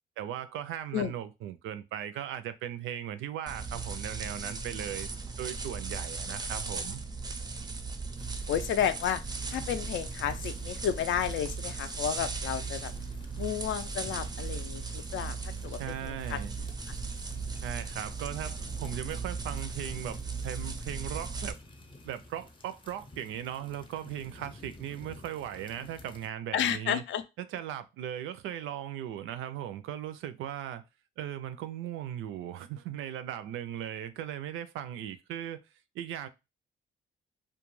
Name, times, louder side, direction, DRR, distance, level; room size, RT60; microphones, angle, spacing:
voice 1, 0.2-5.1 5.4-7.0 15.7-16.6 17.5-20.2 20.4-21.6 22.0-27.0 27.4-30.8 31.2-35.6 35.9-36.3, right 10 dB, 80° right, 0.4 m, -38 dB
sound 1, 3.5-21.5, right 4 dB, 20° right, 0.4 m, -37 dB
sound 2, 8.2-26.3, left 2 dB, 25° left, 0.6 m, -50 dB
voice 2, 8.5-9.2 9.5-12.9 13.4-16.4 26.5-27.2, left 9 dB, 70° left, 0.4 m, -32 dB
2.3 x 2.2 x 3.0 m
cardioid pair, 90°, 20 cm